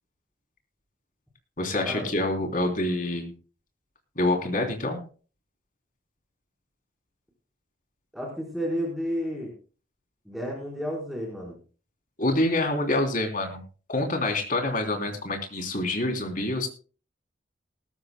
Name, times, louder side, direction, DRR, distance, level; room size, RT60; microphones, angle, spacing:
voice 1, 1.6-3.3 4.2-5.0 12.2-13.6 13.9-16.7, left 2 dB, 45° left, 3 dB, 3.3 m, -26 dB
voice 2, 8.1-9.5 10.2-11.6, equal, ahead, -2 dB, 4.1 m, -31 dB
19.5 x 14.5 x 2.2 m, 0.37 s
head